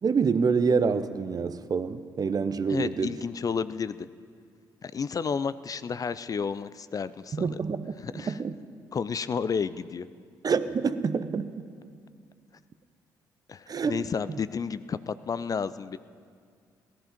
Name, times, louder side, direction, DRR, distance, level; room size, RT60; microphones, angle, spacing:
voice 1, 0.0-3.1 7.3-8.5 10.4-11.6 13.7-14.0, right 5 dB, 40° right, 13 dB, 0.7 m, -27 dB
voice 2, 2.7-4.1 4.8-7.6 8.0-8.4 8.9-10.1 13.5-16.0, left 6 dB, 40° left, 15 dB, 0.4 m, -31 dB
17.0 x 11.5 x 5.2 m, 2.1 s
hypercardioid pair, 45°, 10 cm